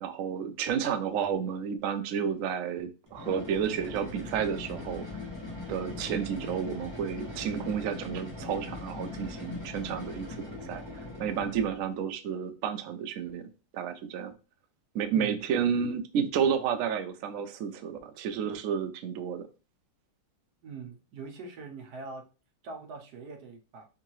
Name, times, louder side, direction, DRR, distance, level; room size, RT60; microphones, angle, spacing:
voice 1, 0.0-5.0 5.7-10.3 10.6-10.8 11.2-13.4 13.7-14.3 14.9-19.5, right 7 dB, 85° right, 8 dB, 0.7 m, -31 dB
sound 1, 3.1-11.8, left 2 dB, 20° left, 0.7 m, -40 dB
voice 2, 15.1-15.4 20.6-22.2 22.6-23.9, right 4 dB, 70° right, 2 dB, 1.3 m, -42 dB
3.8 x 2.7 x 3.0 m, 0.32 s
omnidirectional pair, 1.9 m